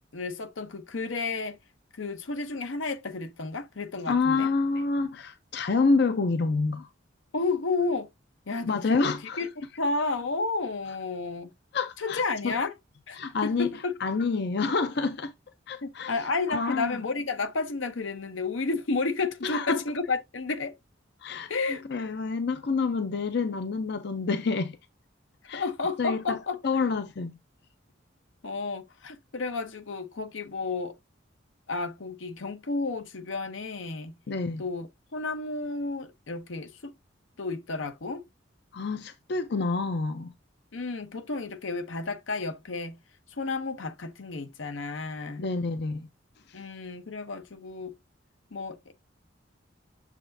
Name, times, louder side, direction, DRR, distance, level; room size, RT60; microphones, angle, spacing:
voice 1, 0.1-1.6 1.9-4.5 7.3-8.1 8.5-11.5 12.0-12.7 13.1-13.9 15.8-20.7 21.5-21.8 25.4-26.6 28.4-31.0 31.7-34.1 34.6-36.9 37.4-38.2 40.7-43.0 43.3-45.5 46.5-47.9 48.5-48.9, left 3 dB, 80° left, 0.8 m, -32 dB
voice 2, 4.1-6.9 8.7-9.4 11.7-12.7 13.2-13.7 14.0-15.3 15.7-16.1 16.5-17.0 19.4-19.8 21.2-21.5 21.9-24.8 25.5-25.6 26.0-26.4 26.6-27.4 34.3-34.6 38.7-40.3 45.4-46.1, left 4 dB, 60° left, 0.5 m, -28 dB
6.8 x 6.0 x 2.6 m
head